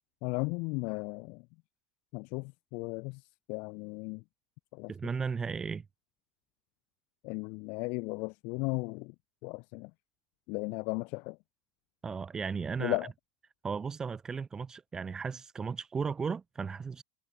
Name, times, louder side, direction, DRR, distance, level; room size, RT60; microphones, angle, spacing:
voice 1, 0.2-1.5 2.1-4.2 4.7-4.9 7.2-9.1 9.4-9.9 10.5-11.4 12.8-13.1, left 30 dB, 50° left, 0.4 m, -35 dB
voice 2, 4.9-5.8 12.0-13.0 13.6-17.0, right 5 dB, 20° right, 1.0 m, -35 dB
figure-of-eight pair, 80°, 3 cm